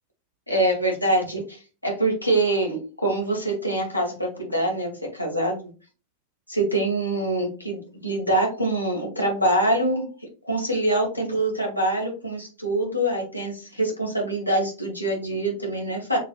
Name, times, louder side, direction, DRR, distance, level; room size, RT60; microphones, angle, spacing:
voice 1, 0.5-5.7 6.5-10.1 10.4-16.2, right 1 dB, 90° left, -2 dB, 1.7 m, -25 dB
6.3 x 3.2 x 2.4 m, 0.35 s
figure-of-eight pair, 90°, 0 cm